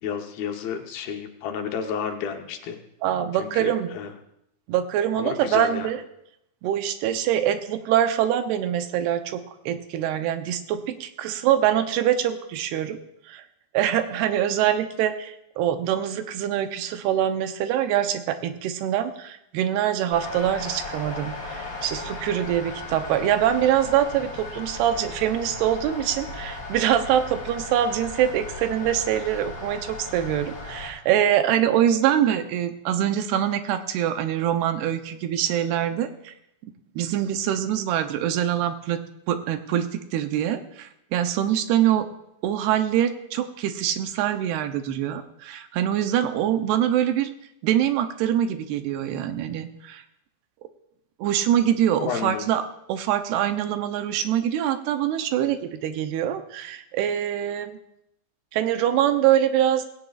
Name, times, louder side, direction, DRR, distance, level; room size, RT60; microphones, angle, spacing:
voice 1, 0.0-2.8 3.3-4.1 5.1-5.9 52.0-52.5, left 7 dB, 75° left, 4 dB, 2.8 m, -31 dB
voice 2, 3.0-3.9 4.7-6.0 6.6-13.0 13.3-13.4 13.7-36.3 37.0-39.0 39.3-42.1 42.4-47.3 47.6-50.0 51.2-52.6 52.9-57.8 58.5-59.9, right 10 dB, 90° right, 8 dB, 2.9 m, -24 dB
sound 1, 20.1-30.9, left 3 dB, 25° left, 6.1 m, -36 dB
18.5 x 16.5 x 2.4 m, 0.78 s
omnidirectional pair, 4.5 m